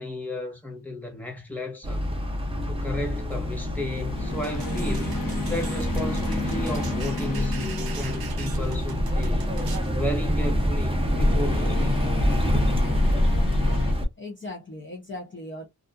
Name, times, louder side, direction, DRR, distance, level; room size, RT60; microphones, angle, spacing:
voice 1, 0.0-2.2 2.7-11.9, left 1 dB, 5° left, 1.1 m, -34 dB
sound 1, 1.8-14.1, equal, 15° right, 0.6 m, -26 dB
sound 2, 2.0-2.4 4.0-9.1 10.9-13.9, left 5 dB, 65° left, 0.7 m, -34 dB
sound 3, 4.4-9.9, right 6 dB, 80° right, 0.6 m, -40 dB
voice 2, 11.2-12.2 14.2-15.7, left 2 dB, 35° left, 0.6 m, -40 dB
2.6 x 2.4 x 2.2 m
wide cardioid pair, 100°, 36 cm